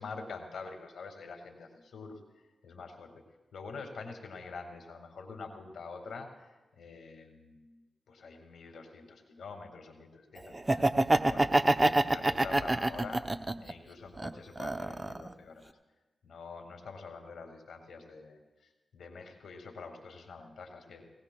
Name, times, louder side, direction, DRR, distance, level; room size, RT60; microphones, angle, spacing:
voice 1, 0.0-7.8 8.1-10.9 11.3-15.8 16.2-21.2, left 4 dB, 80° left, 4 dB, 1.8 m, -46 dB
Laughter, 10.5-13.7 14.2-15.3, right 2 dB, 25° right, 0.6 m, -26 dB
19.5 x 17.5 x 2.2 m, 1.2 s
supercardioid pair, 45°, 0 cm